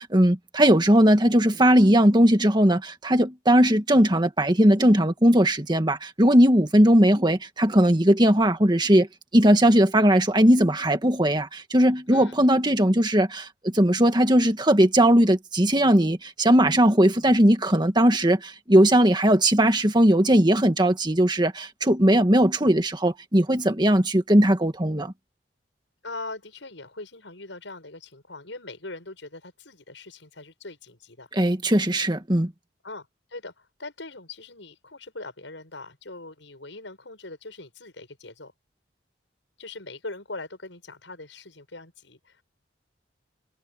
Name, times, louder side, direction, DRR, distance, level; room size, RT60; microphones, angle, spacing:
voice 1, 0.0-9.1 9.3-25.1 31.3-32.5, right 1 dB, 25° right, 1.8 m, -19 dB
voice 2, 26.0-31.3 32.8-38.5 39.6-42.4, left 2 dB, 80° left, 6.6 m, -41 dB
head